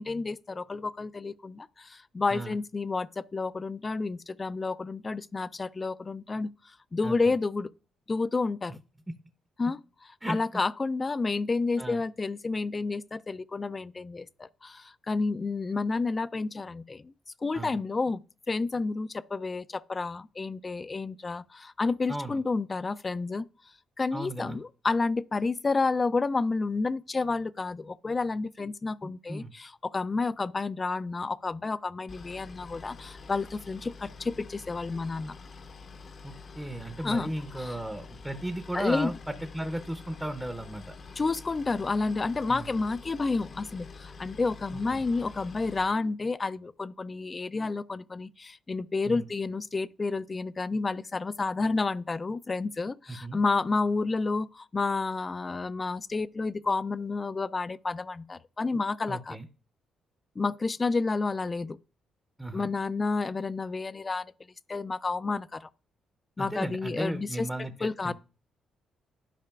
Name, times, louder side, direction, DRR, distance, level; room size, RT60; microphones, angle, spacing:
voice 1, 0.0-6.5 6.9-7.7 8.1-8.8 9.6-9.8 10.3-17.1 17.4-18.2 18.5-23.5 24.0-35.3 37.0-37.3 37.6-37.8 38.7-39.1 41.2-59.4 60.4-61.8 62.5-64.3 64.7-65.7 66.4-67.5 67.8-68.1, left 3 dB, 30° left, 0.3 m, -30 dB
voice 2, 7.0-7.3 10.2-10.4 11.8-12.0 17.5-17.8 22.1-22.4 24.1-24.6 29.0-29.5 36.2-40.9 42.5-42.7 44.7-45.0 49.1-49.3 53.1-53.4 59.1-59.5 62.4-62.7 66.4-68.1, right 1 dB, 10° right, 0.6 m, -36 dB
Boat Water vehicle, 32.1-45.8, left 4 dB, 45° left, 0.7 m, -47 dB
11.5 x 4.8 x 2.3 m
cardioid pair, 90°, 0 cm